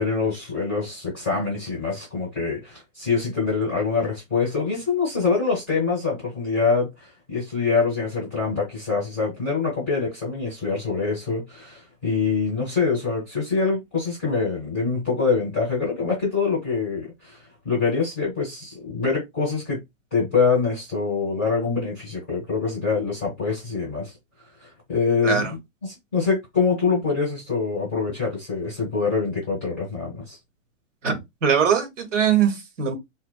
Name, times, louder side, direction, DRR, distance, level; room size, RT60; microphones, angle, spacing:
voice 1, 0.0-19.8 20.1-24.1 24.6-30.4, left 4 dB, 10° left, 0.5 m, -25 dB
voice 2, 31.0-32.9, right 7 dB, 65° right, 0.9 m, -21 dB
2.7 x 2.1 x 2.3 m
hypercardioid pair, 170°, 40 cm